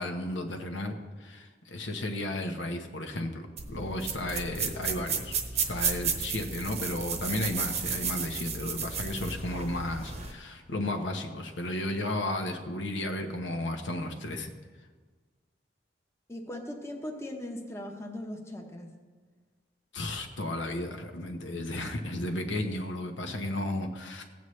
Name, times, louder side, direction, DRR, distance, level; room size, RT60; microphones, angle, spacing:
voice 1, 0.0-5.4 5.6-14.5 19.9-24.2, left 1 dB, 80° left, 4 dB, 1.0 m, -34 dB
sound 1, 3.6-10.3, right 5 dB, 35° right, 0.9 m, -33 dB
voice 2, 16.3-18.9, left 1 dB, 15° left, 2 dB, 0.9 m, -39 dB
16.0 x 8.3 x 3.2 m, 1.4 s
head